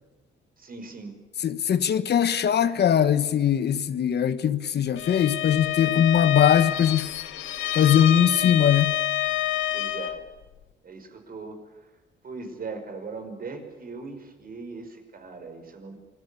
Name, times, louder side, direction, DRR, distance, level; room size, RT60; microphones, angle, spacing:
voice 1, 0.6-1.2 9.7-10.2 10.8-11.6 12.2-15.9, right 4 dB, 45° right, 5.6 m, -39 dB
voice 2, 1.4-7.1 7.7-8.9, left 9 dB, 55° left, 1.3 m, -21 dB
Bowed string instrument, 4.9-10.2, left 12 dB, 80° left, 1.7 m, -27 dB
27.0 x 20.0 x 8.6 m
cardioid pair, 90°, 20 cm